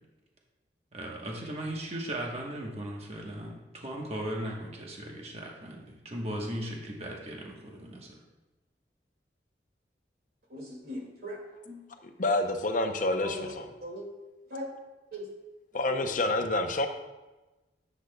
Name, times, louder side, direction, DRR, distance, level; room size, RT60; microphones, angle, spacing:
voice 1, 0.9-8.1, right 1 dB, 35° right, -1 dB, 1.2 m, -37 dB
voice 2, 10.5-11.8 13.2-13.5 13.8-14.1 14.5-14.7 15.1-15.3 15.9-16.1, equal, 60° right, -2 dB, 2.2 m, -39 dB
voice 3, 12.2-13.6 15.7-16.9, left 2 dB, 50° left, 6 dB, 0.7 m, -28 dB
10.0 x 8.1 x 2.3 m, 1.1 s
head